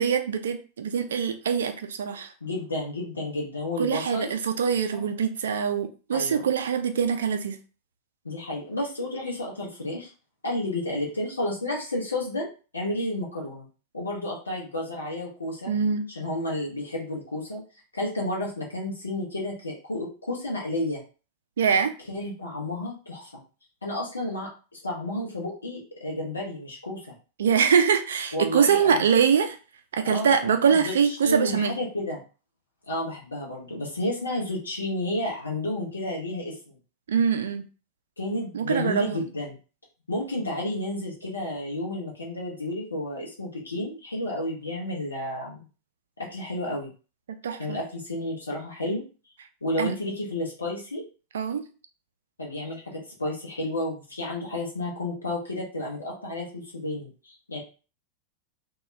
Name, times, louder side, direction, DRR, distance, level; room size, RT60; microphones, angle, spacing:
voice 1, 0.0-2.3 3.8-7.6 15.7-16.1 21.6-21.9 27.4-29.6 29.9-31.8 37.1-37.6 38.5-39.2 47.4-47.8 49.8-49.9 51.3-51.6, right 7 dB, 65° right, 7 dB, 0.4 m, -23 dB
voice 2, 2.4-4.3 4.9-5.1 6.1-6.4 8.2-10.1 10.4-12.5 12.7-13.7 13.9-15.7 16.1-17.6 17.9-21.0 22.1-23.3 23.8-27.0 28.3-29.0 30.0-32.2 32.9-36.7 38.2-39.6 40.1-45.6 46.2-46.9 47.6-49.0 49.6-51.0 52.4-57.6, left 1 dB, 75° left, -3 dB, 0.7 m, -31 dB
2.2 x 2.2 x 3.1 m, 0.35 s
figure-of-eight pair, 90°, 0 cm